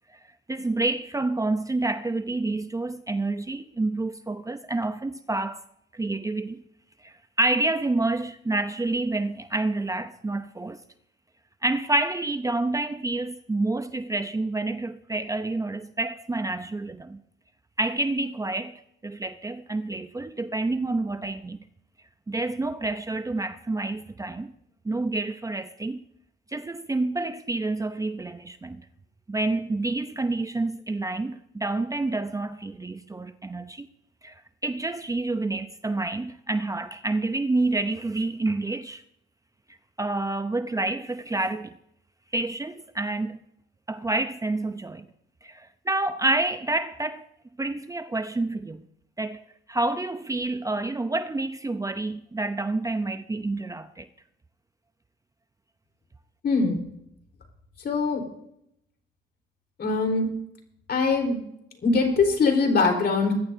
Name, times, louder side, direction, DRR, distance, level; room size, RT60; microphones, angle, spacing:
voice 1, 0.5-5.6 5.9-6.6 7.0-10.8 11.6-17.2 17.8-21.6 22.3-24.5 24.8-26.0 26.5-28.8 29.3-33.9 34.2-39.0 40.0-41.7 42.3-43.4 43.9-45.1 45.4-47.2 47.6-48.9 49.2-49.4 49.7-54.1, right 2 dB, 15° right, 0.6 m, -28 dB
voice 2, 56.4-56.8 57.8-58.2 59.8-60.3 60.9-61.4 61.8-63.3, left 4 dB, 55° left, 4.1 m, -22 dB
21.5 x 13.5 x 2.7 m
cardioid pair, 90°, 20 cm